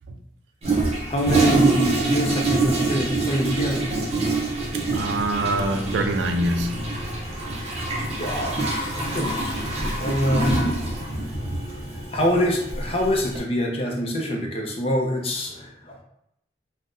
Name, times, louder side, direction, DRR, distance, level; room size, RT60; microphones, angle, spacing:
Toilet flush, 0.6-13.4, right 2 dB, 35° right, 0.6 m, -25 dB
voice 1, 1.1-3.9 8.2-8.6 9.1-9.3 10.0-10.8 12.1-16.0, equal, 35° left, 0.5 m, -25 dB
voice 2, 4.9-6.9, right 2 dB, 80° right, 0.4 m, -24 dB
2.6 x 2.1 x 3.6 m
head